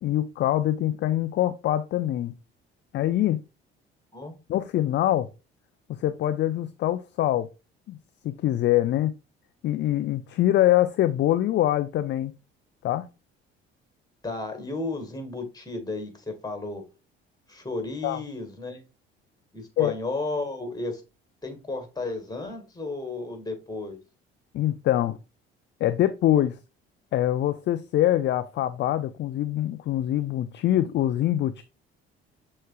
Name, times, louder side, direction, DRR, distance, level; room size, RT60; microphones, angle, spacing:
voice 1, 0.0-2.3 2.9-3.4 4.5-5.3 5.9-7.5 7.9-8.0 8.2-9.1 9.6-12.3 12.8-13.1 18.0-18.2 19.8-19.9 24.5-25.2 25.8-26.6 27.1-31.6, left 13 dB, 40° left, 0.4 m, -24 dB
voice 2, 14.2-16.8 17.5-18.8 19.5-21.0 21.4-24.0, left 2 dB, 10° left, 1.7 m, -33 dB
6.4 x 3.1 x 2.3 m
hypercardioid pair, 55°, 31 cm